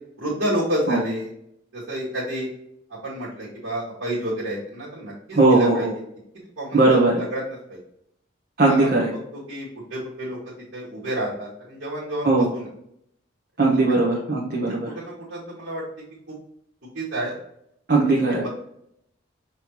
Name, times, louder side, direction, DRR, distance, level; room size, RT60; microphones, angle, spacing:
voice 1, 0.2-1.3 1.7-2.5 3.0-5.9 6.6-7.8 8.7-8.9 9.3-10.4 10.7-12.7 14.7-15.8 16.3-16.4 16.9-17.3 18.0-18.5, right 1 dB, 75° right, -9 dB, 1.8 m, -30 dB
voice 2, 5.3-5.9 6.7-7.2 8.6-9.1 12.2-12.5 13.6-14.9 17.9-18.5, right 2 dB, 50° right, -4 dB, 1.0 m, -19 dB
5.5 x 3.2 x 2.9 m, 0.73 s
head